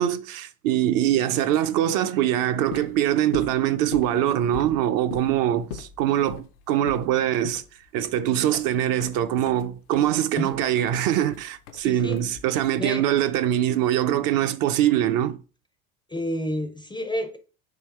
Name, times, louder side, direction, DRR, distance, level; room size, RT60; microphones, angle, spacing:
voice 1, 0.0-7.6 7.9-15.4, right 11 dB, 50° right, 0.5 m, -23 dB
sound 1, 2.5-12.7, left 8 dB, 85° left, 0.6 m, -41 dB
voice 2, 11.8-12.2 12.7-13.1 16.1-17.4, equal, 10° left, 0.4 m, -30 dB
3.8 x 2.8 x 4.3 m
hypercardioid pair, 75°, 44 cm